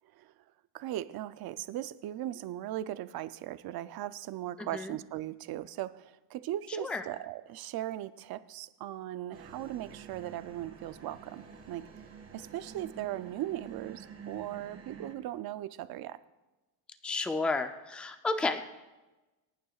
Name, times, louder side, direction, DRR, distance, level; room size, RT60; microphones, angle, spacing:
voice 1, 0.0-0.4 0.7-11.9 12.3-16.2, right 13 dB, 50° right, 14 dB, 0.6 m, -38 dB
voice 2, 4.6-4.9 6.8-7.0 17.0-18.7, left 3 dB, ahead, 8 dB, 0.4 m, -32 dB
sound 1, 9.3-15.1, right 6 dB, 30° right, 2.2 m, -49 dB
25.0 x 9.3 x 2.4 m, 1.1 s
cardioid pair, 135°, 47 cm